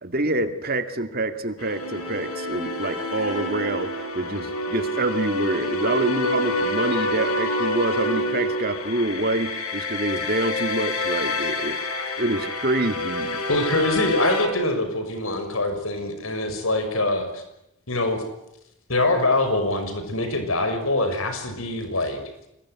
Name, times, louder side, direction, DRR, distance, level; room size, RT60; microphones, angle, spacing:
voice 1, 0.0-13.4, right 2 dB, 45° right, 8 dB, 2.3 m, -26 dB
sound 1, 1.6-14.5, left 1 dB, 90° left, 5.6 m, -27 dB
voice 2, 13.5-17.4 17.9-18.2 18.9-22.2, left 2 dB, 70° left, 7 dB, 6.2 m, -24 dB
26.5 x 22.0 x 9.6 m, 0.83 s
head